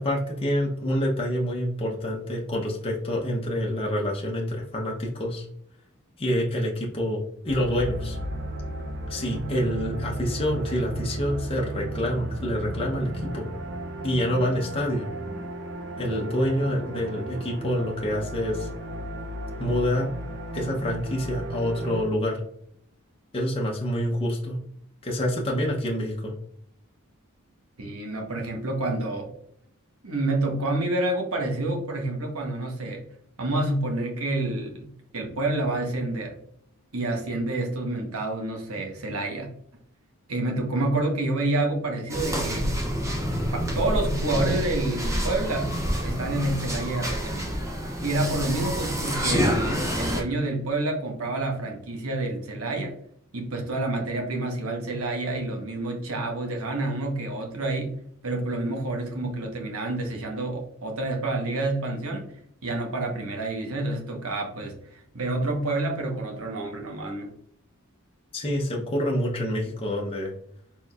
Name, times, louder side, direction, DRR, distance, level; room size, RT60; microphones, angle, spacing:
voice 1, 0.0-5.4 6.2-8.2 9.1-13.5 14.0-15.1 16.0-18.7 19.6-20.1 20.5-22.4 23.3-24.6 25.0-26.3 68.3-70.3, equal, 25° left, -2 dB, 0.8 m, -27 dB
sound 1, 7.5-22.0, right 1 dB, 55° right, 0.6 m, -34 dB
voice 2, 27.8-29.3 30.0-33.0 33.4-34.9 35.1-36.4 36.9-39.5 40.3-42.7 43.5-47.6 48.0-52.9 53.3-57.9 58.2-62.3 62.6-67.3, right 2 dB, 80° right, 1 dB, 1.1 m, -28 dB
sound 2, 42.1-50.2, equal, 15° right, 0.7 m, -27 dB
4.4 x 3.7 x 2.4 m, 0.67 s
head